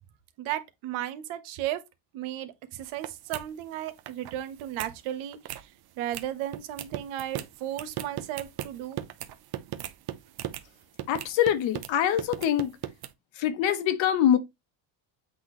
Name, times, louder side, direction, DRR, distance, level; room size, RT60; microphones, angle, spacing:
voice 1, 0.4-1.8 2.1-5.7 6.0-9.0, right 12 dB, 80° right, 1.1 m, -35 dB
sound 1, 2.8-3.1 3.3-3.5 3.8-4.3 4.6-4.9 5.3-5.6 6.1-6.3 6.5-10.6 11.0-11.9 12.2-13.1, right 13 dB, 50° right, 0.8 m, -37 dB
voice 2, 11.1-12.7 13.3-14.4, left 10 dB, 70° left, 1.1 m, -24 dB
7.9 x 3.9 x 3.1 m
cardioid pair, 125°, 47 cm